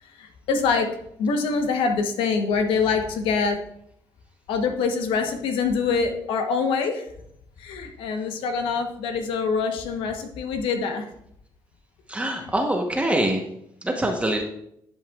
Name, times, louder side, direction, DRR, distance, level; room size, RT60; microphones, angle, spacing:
voice 1, 0.1-3.6 4.5-7.0 7.6-11.1 12.3-12.5, left 5 dB, 80° left, 5 dB, 1.1 m, -25 dB
voice 2, 12.1-13.4 13.8-14.4, right 1 dB, 15° right, 2 dB, 1.0 m, -24 dB
10.5 x 5.6 x 2.4 m, 0.73 s
supercardioid pair, 75°, 9 cm